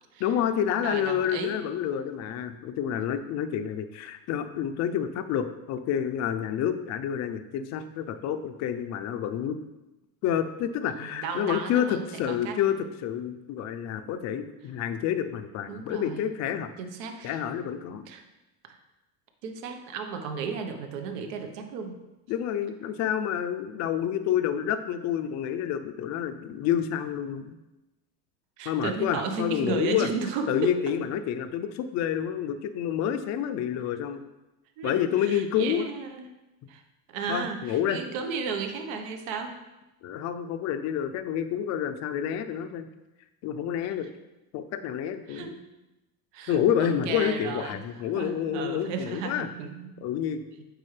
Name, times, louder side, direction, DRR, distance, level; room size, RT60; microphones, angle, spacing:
voice 1, 0.2-9.6 10.2-16.7 17.2-18.1 22.3-27.5 28.7-30.1 30.5-34.2 34.8-35.9 37.3-38.0 40.0-42.9 43.4-44.1 44.5-45.6 46.5-49.5 50.0-50.4, left 9 dB, 40° left, 10 dB, 0.5 m, -28 dB
voice 2, 0.8-1.6 10.9-12.6 15.7-16.2 16.8-17.4 18.1-18.2 18.6-18.8 19.4-22.0 28.6-30.8 34.8-36.3 36.7-36.8 37.1-39.6 44.0-44.1 45.3-45.6 46.3-47.8 48.1-50.0 50.5-50.6, right 5 dB, 70° right, 6 dB, 1.1 m, -34 dB
8.6 x 4.6 x 3.3 m, 1.0 s
supercardioid pair, 135°, 41 cm